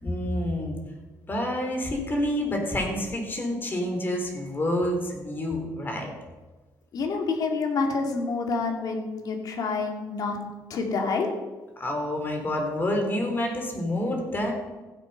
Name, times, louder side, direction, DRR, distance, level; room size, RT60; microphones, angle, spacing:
voice 1, 0.0-0.8 1.3-6.1 11.8-14.5, left 1 dB, 30° left, 2 dB, 3.4 m, -28 dB
voice 2, 6.9-10.4 10.7-11.3, left 4 dB, 60° left, 2 dB, 2.4 m, -28 dB
15.5 x 7.7 x 5.5 m, 1.3 s
cardioid pair, 100°, 7 cm